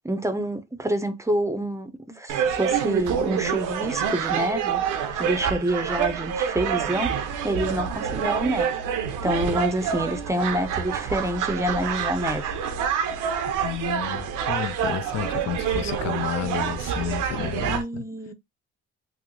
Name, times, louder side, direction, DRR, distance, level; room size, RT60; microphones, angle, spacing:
voice 1, 0.0-4.8 5.1-12.6 17.7-18.3, right 1 dB, 10° right, 0.5 m, -27 dB
sound 1, 2.3-17.8, right 8 dB, 90° right, 0.6 m, -27 dB
voice 2, 13.6-18.1, left 11 dB, 60° left, 0.5 m, -31 dB
3.1 x 2.0 x 3.6 m
cardioid pair, 90°, 30 cm